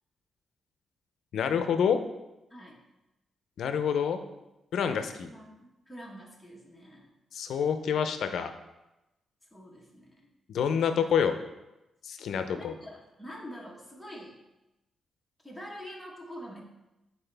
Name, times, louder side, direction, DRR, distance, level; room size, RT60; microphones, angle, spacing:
voice 1, 1.3-2.0 3.6-4.2 4.7-5.3 7.3-8.5 10.5-11.3 12.0-12.7, left 7 dB, 80° left, 8 dB, 0.5 m, -27 dB
voice 2, 5.2-7.1 9.5-10.3 12.5-14.4 15.4-16.6, equal, ahead, -2 dB, 1.2 m, -45 dB
7.9 x 4.2 x 3.3 m, 0.96 s
wide cardioid pair, 140°, 0 cm